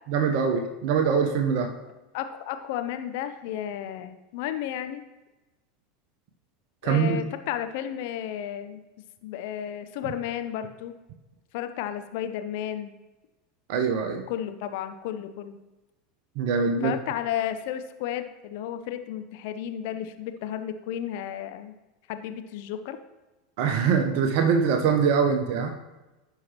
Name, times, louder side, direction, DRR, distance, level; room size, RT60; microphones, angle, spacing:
voice 1, 0.1-1.7 6.8-7.2 13.7-14.3 16.4-16.9 23.6-25.7, right 6 dB, 55° right, 5 dB, 0.8 m, -23 dB
voice 2, 2.1-5.0 6.8-8.8 9.2-10.9 11.5-12.9 14.3-15.6 16.6-21.7 22.1-23.0, left 10 dB, 55° left, 9 dB, 0.7 m, -33 dB
15.0 x 5.8 x 3.0 m, 1.1 s
figure-of-eight pair, 80°, 0 cm